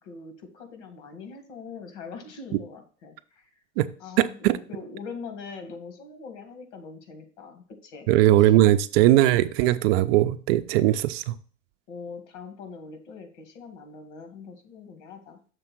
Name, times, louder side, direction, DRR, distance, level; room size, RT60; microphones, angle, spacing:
voice 1, 0.0-3.5 4.0-8.1 8.4-8.5 11.9-15.4, left 5 dB, 65° left, 6 dB, 2.1 m, -42 dB
voice 2, 4.2-4.6 8.1-11.3, right 14 dB, 50° right, 11 dB, 0.6 m, -19 dB
6.7 x 3.5 x 6.0 m, 0.41 s
hypercardioid pair, 120°, 38 cm